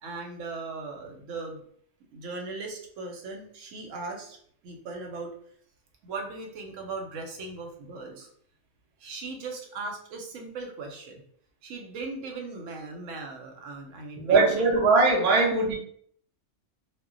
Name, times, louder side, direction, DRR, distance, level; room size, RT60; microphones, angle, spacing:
voice 1, 0.0-1.6 2.1-4.4 4.6-5.3 6.0-8.3 9.0-11.2 11.6-14.7, right 3 dB, 85° right, 2 dB, 1.0 m, -38 dB
voice 2, 14.2-15.7, right 3 dB, 55° right, 0 dB, 0.4 m, -21 dB
2.1 x 2.1 x 3.7 m, 0.62 s
omnidirectional pair, 1.3 m